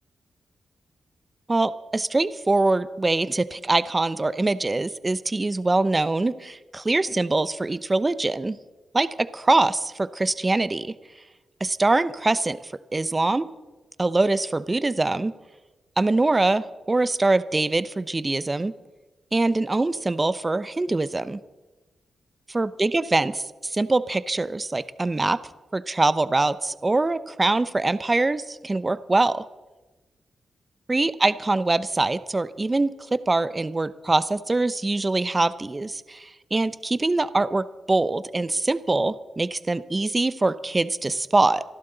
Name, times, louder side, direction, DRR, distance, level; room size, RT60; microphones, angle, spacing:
voice 1, 1.5-8.6 8.9-10.9 11.6-13.5 14.0-15.3 16.0-18.7 19.3-21.4 22.5-23.3 23.6-25.4 25.7-29.4 30.9-41.6, right 2 dB, 25° right, 15 dB, 0.7 m, -23 dB
27.0 x 12.0 x 4.0 m, 1.1 s
cardioid pair, 65°, 0 cm